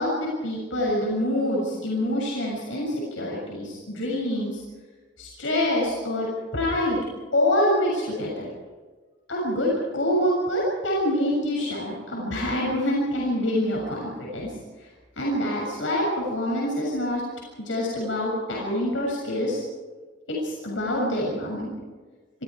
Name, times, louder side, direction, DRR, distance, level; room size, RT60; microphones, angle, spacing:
voice 1, 0.0-4.6 5.2-7.0 7.3-8.5 9.3-14.5 15.2-17.2 17.6-19.6 20.3-21.7, left 1 dB, 75° left, -3 dB, 7.1 m, -26 dB
28.0 x 23.5 x 4.8 m, 1.4 s
head